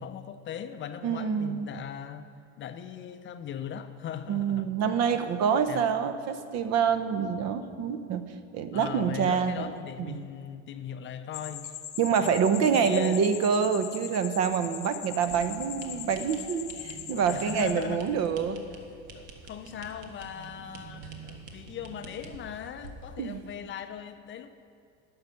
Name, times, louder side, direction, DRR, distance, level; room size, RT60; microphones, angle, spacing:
voice 1, 0.0-2.3 2.6-4.7 5.1-5.2 5.7-5.9 8.7-11.7 12.1-12.4 12.7-13.2 17.3-18.1 19.1-24.5, left 9 dB, 35° left, 9 dB, 0.5 m, -39 dB
voice 2, 1.0-1.7 4.3-8.2 8.5-9.7 10.1-10.2 12.0-18.6 23.2-23.5, right 7 dB, 45° right, 10 dB, 0.8 m, -26 dB
sound 1, 11.3-17.7, left 11 dB, 50° left, 0.9 m, -41 dB
sound 2, 15.3-23.1, right 4 dB, 65° right, 1.5 m, -46 dB
11.0 x 5.5 x 6.9 m, 2.3 s
supercardioid pair, 100°, 36 cm